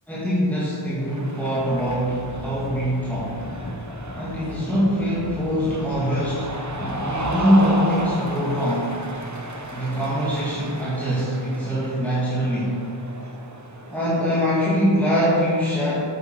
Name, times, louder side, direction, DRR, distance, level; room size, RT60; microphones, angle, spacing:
voice 1, 0.1-3.5 4.1-9.0 9.7-12.8 13.9-15.9, equal, 5° left, -9 dB, 2.7 m, -23 dB
Cheering, 1.0-14.5, right 1 dB, 40° right, 1.3 m, -34 dB
sound 1, 1.6-7.3, left 2 dB, 55° left, 1.1 m, -39 dB
8.8 x 8.0 x 6.4 m, 2.6 s
wide cardioid pair, 50°, 45 cm